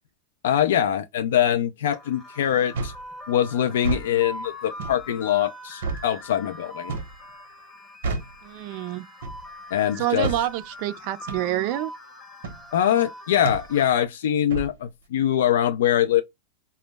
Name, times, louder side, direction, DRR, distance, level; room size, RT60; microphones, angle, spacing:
voice 1, 0.4-2.9 3.3-7.0 9.7-10.3 12.7-16.2, left 10 dB, 85° left, 0.3 m, -23 dB
sound 1, 1.9-14.1, left 1 dB, 15° left, 0.9 m, -42 dB
sound 2, 2.7-3.0 3.7-4.1 4.8-5.0 5.8-6.1 6.9-7.2 8.0-8.4 9.2-9.5 10.2-10.5 11.3-11.5 12.4-12.6 13.4-13.7 14.5-14.7, right 4 dB, 85° right, 0.6 m, -30 dB
voice 2, 8.4-9.1 10.0-11.9, right 14 dB, 45° right, 0.3 m, -27 dB
2.1 x 2.0 x 3.2 m
supercardioid pair, 165°, 0 cm